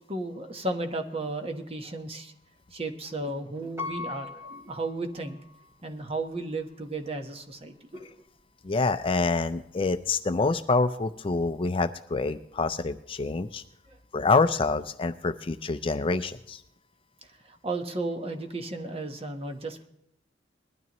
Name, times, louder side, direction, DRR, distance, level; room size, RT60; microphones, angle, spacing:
voice 1, 0.1-2.3 2.7-5.4 5.8-8.1 13.9-14.0 17.4-19.9, right 2 dB, 30° right, 6 dB, 1.2 m, -34 dB
Piano, 3.8-5.7 6.3-6.4, left 4 dB, 15° right, 2.5 m, -39 dB
voice 2, 8.6-13.6 14.1-16.6, left 3 dB, 30° left, 10 dB, 0.4 m, -26 dB
20.5 x 12.5 x 3.0 m, 0.76 s
head